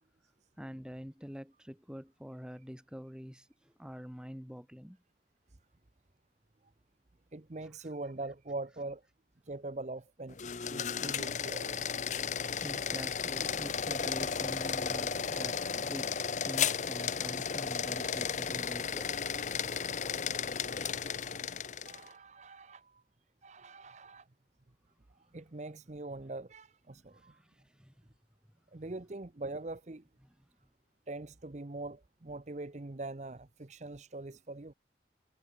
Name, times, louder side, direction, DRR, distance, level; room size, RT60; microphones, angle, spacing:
voice 1, 0.6-5.0 12.5-19.3 27.1-27.9 30.2-30.5, equal, 5° right, 7.4 m, -46 dB
voice 2, 7.3-9.0 9.5-10.4 10.7-11.9 21.8-23.0 23.4-24.3 25.3-27.4 28.7-30.0 31.1-34.7, right 2 dB, 40° right, 0.8 m, -43 dB
sound 1, 10.3-22.1, left 7 dB, 45° left, 0.8 m, -34 dB
head